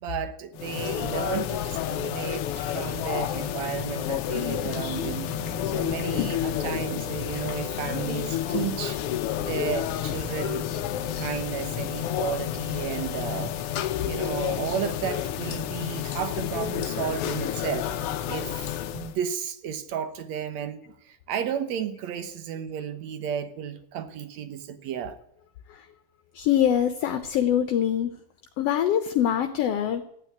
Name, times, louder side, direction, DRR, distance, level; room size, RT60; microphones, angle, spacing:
voice 1, 0.0-5.3 5.7-9.0 9.4-10.7 11.2-17.9 18.3-25.2, right 8 dB, 65° right, 2.1 m, -33 dB
sound 1, 0.6-19.2, left 11 dB, 90° left, 1.2 m, -30 dB
sound 2, 4.7-13.3, equal, 35° left, 1.2 m, -45 dB
voice 2, 26.3-28.1 28.6-30.0, left 10 dB, 65° left, 1.6 m, -23 dB
15.0 x 9.0 x 9.5 m
omnidirectional pair, 3.7 m